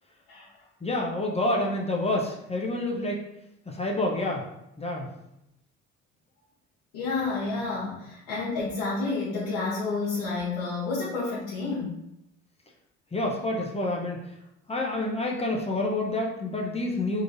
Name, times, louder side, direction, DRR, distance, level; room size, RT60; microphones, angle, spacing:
voice 1, 0.8-3.2 3.7-4.4 4.8-5.1 13.1-14.2 14.7-17.2, left 2 dB, 15° left, -1 dB, 0.9 m, -28 dB
voice 2, 6.9-11.9, left 3 dB, 75° left, -10 dB, 1.3 m, -30 dB
3.8 x 3.1 x 2.7 m, 0.84 s
hypercardioid pair, 55°, 36 cm